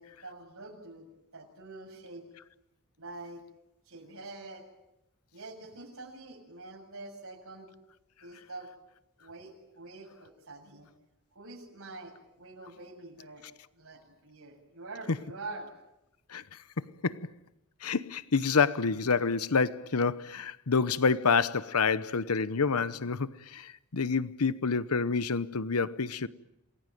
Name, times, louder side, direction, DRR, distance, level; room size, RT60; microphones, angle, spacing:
voice 1, 0.0-2.3 3.0-3.4 3.9-4.6 5.3-7.7 8.2-8.7 9.2-10.9 11.3-13.4 13.7-15.7, right 2 dB, 70° right, 7.2 m, -46 dB
voice 2, 17.8-26.3, left 5 dB, 80° left, 0.9 m, -28 dB
28.0 x 21.0 x 9.3 m
head